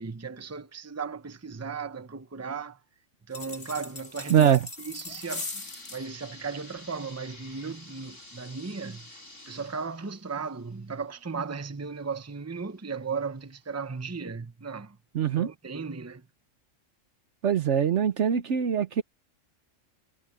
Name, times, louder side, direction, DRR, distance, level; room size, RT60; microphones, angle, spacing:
voice 1, 0.0-2.8 3.3-9.2 9.5-15.0 15.2-16.3, right 5 dB, 15° right, 0.8 m, -36 dB
sound 1, 3.3-6.0, left 3 dB, 55° left, 2.7 m, -39 dB
sound 2, 4.6-12.2 12.7-12.8 13.6-13.7 14.1-14.2, left 2 dB, 75° left, 6.6 m, -50 dB
voice 2, 15.1-15.5 17.4-19.0, right 9 dB, 65° right, 1.1 m, -22 dB
omnidirectional pair, 1.3 m